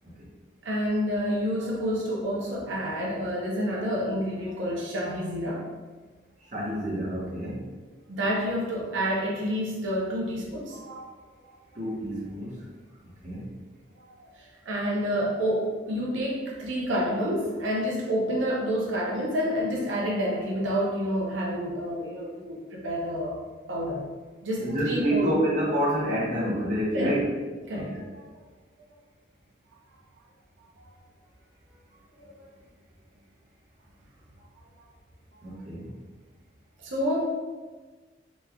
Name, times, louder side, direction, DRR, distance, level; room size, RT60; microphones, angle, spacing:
voice 1, 0.6-5.6 8.1-11.1 11.4-11.5 14.0-14.1 14.4-23.4 23.7-24.0 24.4-25.4 26.9-27.2 27.7-28.3 30.8-30.9 32.2-32.3 36.8-37.2, equal, 90° right, -3 dB, 0.7 m, -29 dB
voice 2, 6.5-7.6 11.7-12.6 13.2-13.5 24.6-27.3 27.7-28.0 35.4-35.9, right 1 dB, 40° right, -6 dB, 0.8 m, -28 dB
3.0 x 2.3 x 3.5 m, 1.3 s
head